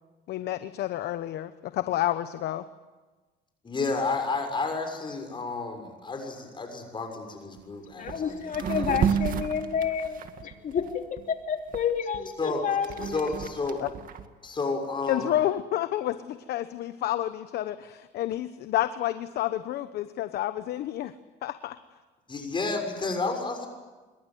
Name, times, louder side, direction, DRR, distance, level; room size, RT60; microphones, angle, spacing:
voice 1, 0.3-2.6 13.8-13.9 15.1-21.1 21.4-21.8, left 13 dB, 75° left, 11 dB, 1.1 m, -29 dB
voice 2, 3.6-8.9 12.4-12.6 13.0-13.8 14.4-15.3 22.3-23.7, left 3 dB, 30° left, 4 dB, 6.6 m, -31 dB
sound 1, 7.6-7.7 8.0-8.2 8.5-11.2 11.7-14.2, right 8 dB, 55° right, 2.1 m, -31 dB
voice 3, 8.0-13.3, left 7 dB, 50° left, 4 dB, 3.2 m, -30 dB
26.0 x 23.0 x 9.4 m, 1.2 s
cardioid pair, 110°, 17 cm